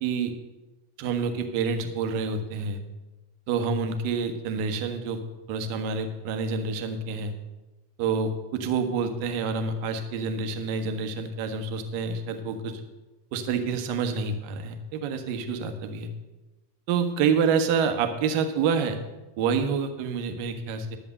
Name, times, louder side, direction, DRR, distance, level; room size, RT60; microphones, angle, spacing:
voice 1, 0.0-0.3 1.0-2.8 3.5-5.2 5.5-7.3 8.0-12.8 13.3-16.1 16.9-19.0 19.4-21.0, right 5 dB, 45° right, 7 dB, 1.3 m, -27 dB
11.0 x 7.3 x 6.6 m, 1.1 s
figure-of-eight pair, 90°, 0 cm